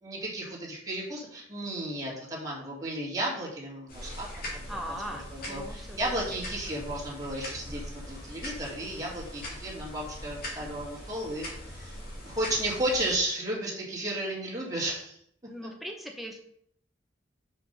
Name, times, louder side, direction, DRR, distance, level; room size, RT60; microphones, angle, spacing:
voice 1, 0.0-4.3 4.5-5.0 5.3-7.8 8.1-12.0 12.2-15.2, right 1 dB, 20° right, -4 dB, 2.1 m, -33 dB
sound 1, 3.9-13.1, left 1 dB, 50° left, 2.1 m, -41 dB
voice 2, 4.7-6.0 15.5-16.4, equal, ahead, 1 dB, 0.8 m, -39 dB
5.7 x 5.1 x 5.3 m, 0.67 s
head